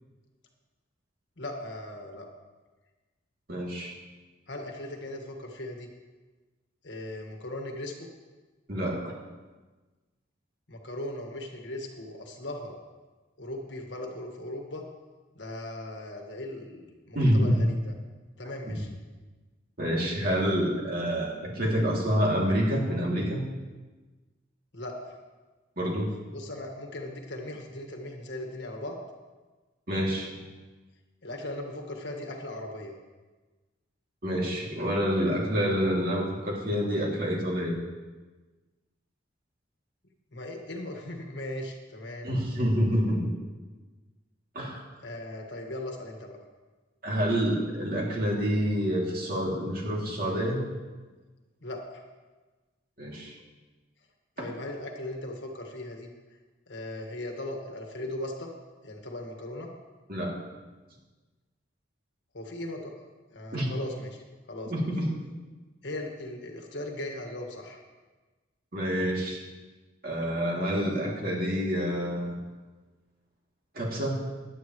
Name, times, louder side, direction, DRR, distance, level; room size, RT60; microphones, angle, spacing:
voice 1, 1.4-2.3 4.5-5.9 6.8-8.1 10.7-12.8 13.4-14.9 15.3-17.9 18.4-18.9 24.7-25.2 26.3-29.0 31.2-33.0 40.3-42.3 45.0-46.4 51.6-52.0 54.4-56.1 56.7-58.5 58.8-59.7 62.3-62.9 63.3-64.2 64.5-64.9 65.8-67.8, left 1 dB, 60° left, 2 dB, 1.7 m, -38 dB
voice 2, 3.5-4.0 8.7-9.1 17.1-17.6 19.8-23.4 25.8-26.1 29.9-30.3 34.2-37.8 42.2-43.3 44.5-44.8 47.0-50.6 53.0-53.3 60.1-60.4 63.5-63.7 64.7-65.2 68.7-69.4 70.0-72.4 73.7-74.2, equal, 45° right, -3 dB, 2.7 m, -27 dB
17.0 x 11.0 x 3.1 m, 1.3 s
head